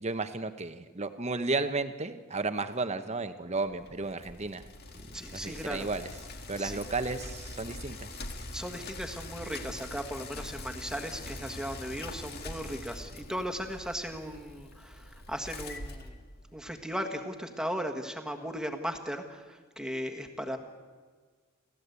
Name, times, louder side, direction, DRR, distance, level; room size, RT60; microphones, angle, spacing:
voice 1, 0.0-4.7 5.3-6.1 6.5-8.1, right 3 dB, 30° right, 10 dB, 1.0 m, -33 dB
Bicycle, 3.7-16.8, left 2 dB, 45° left, 1.8 m, -43 dB
voice 2, 5.1-5.9 6.6-6.8 8.5-16.1 16.5-20.6, equal, 5° right, 5 dB, 1.6 m, -37 dB
29.5 x 13.5 x 8.2 m, 1.5 s
head